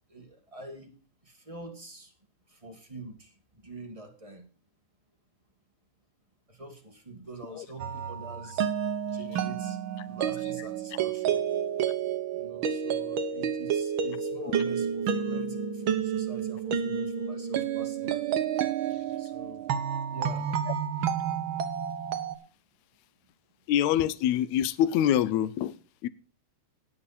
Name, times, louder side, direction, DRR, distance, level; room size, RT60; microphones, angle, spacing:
voice 1, 0.1-1.0 1.2-2.1 2.5-3.3 3.6-4.5 6.5-8.7 9.0-9.8 10.1-11.4 12.3-18.4 19.2-19.7 20.1-20.5, right 2 dB, 15° right, 1.2 m, -45 dB
sound 1, 7.8-22.4, right 8 dB, 60° right, 1.3 m, -30 dB
voice 2, 23.7-25.8 26.0-26.1, left 11 dB, 75° left, 1.9 m, -25 dB
18.5 x 6.6 x 4.1 m
omnidirectional pair, 3.4 m